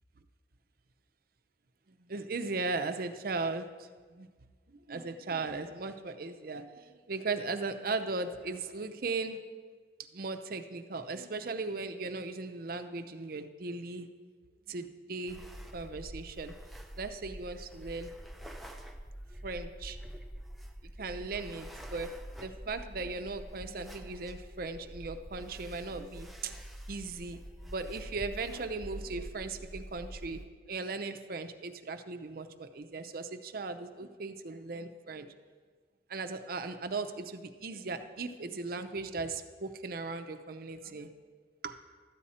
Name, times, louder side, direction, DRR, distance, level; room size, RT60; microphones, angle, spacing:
voice 1, 2.1-4.3 4.7-9.4 10.1-14.1 14.7-15.4 15.7-16.5 17.0-18.1 19.4-20.0 20.8-26.6 26.9-30.4 30.7-35.3 36.1-41.1 41.6-41.8, right 3 dB, 55° right, 8 dB, 0.6 m, -38 dB
sound 1, 15.3-30.5, equal, ahead, 0.5 m, -46 dB
13.0 x 8.8 x 4.3 m, 1.5 s
head